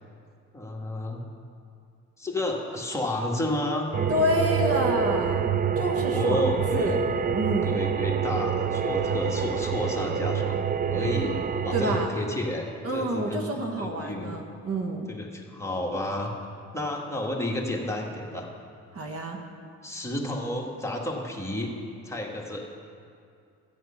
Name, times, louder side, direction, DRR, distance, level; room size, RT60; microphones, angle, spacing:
voice 1, 0.5-1.2 2.2-3.9 6.0-7.0 7.6-14.3 15.1-16.3 16.7-18.5 19.8-21.7 22.0-22.7, left 1 dB, 10° left, -2 dB, 1.8 m, -31 dB
sound 1, 3.9-12.1, right 7 dB, 30° right, 0.4 m, -27 dB
voice 2, 4.1-5.5 5.7-7.0 7.3-7.8 11.7-12.1 12.8-15.1 18.9-19.4, equal, 50° right, 2 dB, 1.5 m, -28 dB
14.0 x 7.9 x 5.7 m, 2.4 s
cardioid pair, 90°, 30 cm